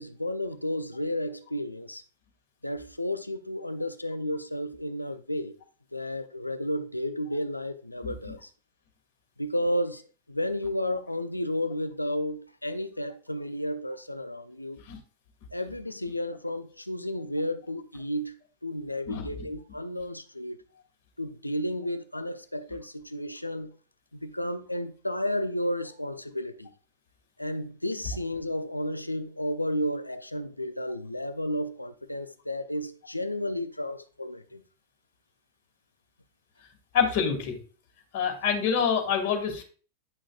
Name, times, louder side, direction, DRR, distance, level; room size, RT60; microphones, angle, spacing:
voice 1, 0.0-2.0 2.6-5.6 5.9-8.5 9.4-10.0 10.3-14.8 15.5-18.3 18.6-20.6 21.2-23.7 24.2-26.7 27.4-34.6, left 1 dB, 85° left, 0.6 m, -32 dB
voice 2, 36.9-37.5 38.1-39.6, left 7 dB, 45° left, 2.2 m, -26 dB
9.9 x 6.2 x 2.5 m
figure-of-eight pair, 90°, 0 cm